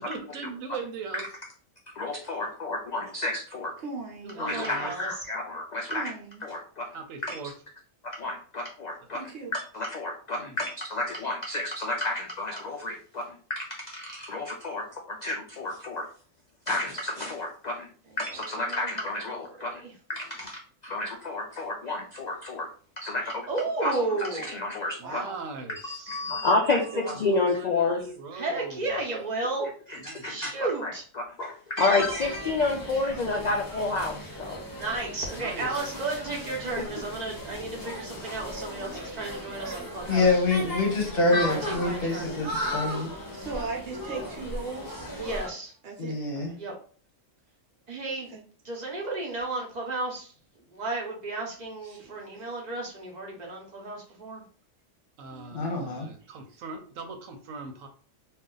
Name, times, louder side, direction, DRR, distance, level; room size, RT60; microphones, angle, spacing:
voice 1, 0.1-1.3 4.2-4.9 6.9-7.5 8.1-8.2 10.4-10.6 25.0-26.4 27.1-29.0 30.0-30.5 35.3-36.0 55.2-57.9, right 4 dB, 85° right, 1.0 m, -40 dB
voice 2, 2.0-3.7 4.4-6.1 6.4-6.9 7.3-7.4 8.0-9.2 9.5-13.2 13.5-16.0 16.7-17.9 18.2-19.7 20.1-22.7 23.0-23.5 23.8-25.2 26.1-28.0 29.9-30.9 31.2-34.6 36.8-36.9 42.2-42.4, left 2 dB, 85° left, 0.3 m, -30 dB
voice 3, 3.8-4.4 5.9-6.5 9.1-9.5 25.0-25.4 26.7-27.5 41.3-41.6 43.3-45.5 45.8-46.1 48.3-48.4 51.8-52.5 55.3-55.5 56.2-56.6, right 4 dB, 65° right, 1.0 m, -39 dB
voice 4, 4.4-5.1 18.1-19.9 23.2-24.6 28.3-29.7 30.3-31.0 34.6-40.4 41.4-42.3 44.0-44.3 45.2-45.7 46.6-46.7 47.9-48.3 48.6-50.3 50.7-54.4, right 2 dB, 40° right, 0.8 m, -33 dB
sound 1, 32.0-45.5, left 1 dB, 20° left, 0.7 m, -36 dB
voice 5, 40.1-43.1 46.0-46.5 55.5-56.1, left 3 dB, 50° left, 0.9 m, -26 dB
2.6 x 2.4 x 3.7 m
omnidirectional pair, 1.3 m